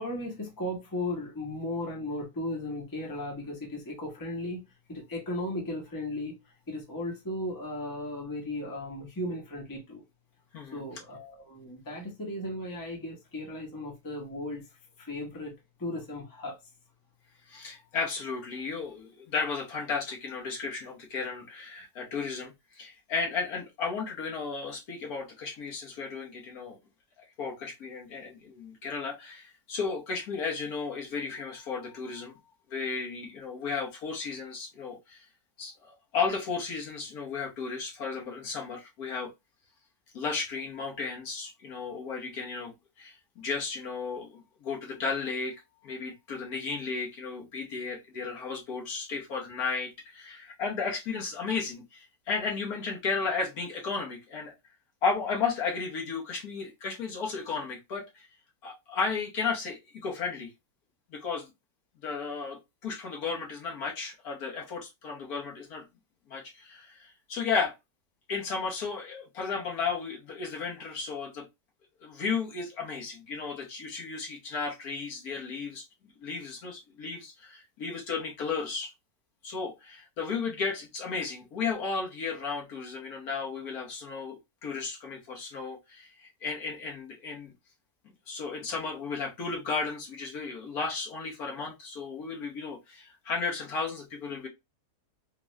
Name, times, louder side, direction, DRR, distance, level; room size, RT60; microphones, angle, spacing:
voice 1, 0.0-6.3 6.7-10.0 10.7-14.7 15.0-15.5 15.8-16.6, left 1 dB, 15° left, 0.8 m, -36 dB
voice 2, 17.5-26.8 27.2-32.3 32.7-35.2 35.6-39.3 40.1-45.5 45.8-54.5 55.0-58.3 58.6-60.5 61.1-61.5 62.0-65.8 66.3-67.7 68.3-71.5 72.0-75.8 76.2-78.9 79.4-87.5 88.3-94.5, left 5 dB, 70° left, 1.5 m, -34 dB
3.6 x 2.4 x 3.1 m
omnidirectional pair, 1.7 m